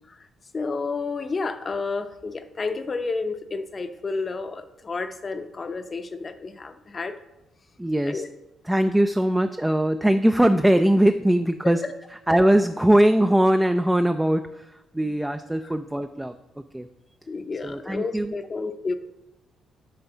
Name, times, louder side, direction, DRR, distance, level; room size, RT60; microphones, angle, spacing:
voice 1, 0.5-7.2 8.1-8.3 11.6-11.9 17.3-18.9, left 4 dB, 35° left, 9 dB, 0.6 m, -30 dB
voice 2, 7.8-8.2 8.6-11.8 12.1-16.9 17.6-18.3, right 1 dB, 5° right, 8 dB, 0.3 m, -21 dB
8.8 x 3.7 x 6.0 m, 0.93 s
cardioid pair, 90°, 0 cm